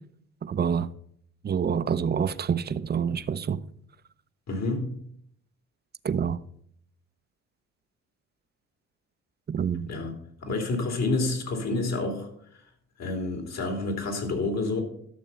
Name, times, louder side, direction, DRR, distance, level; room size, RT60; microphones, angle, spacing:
voice 1, 0.4-0.9 1.4-3.6 6.0-6.4 9.5-9.9, right 7 dB, 35° right, 0.6 m, -27 dB
voice 2, 4.5-5.0 9.9-10.1 10.4-12.6 13.0-14.8, left 2 dB, 60° left, 3.1 m, -29 dB
12.5 x 6.8 x 5.5 m
cardioid pair, 90°, 30 cm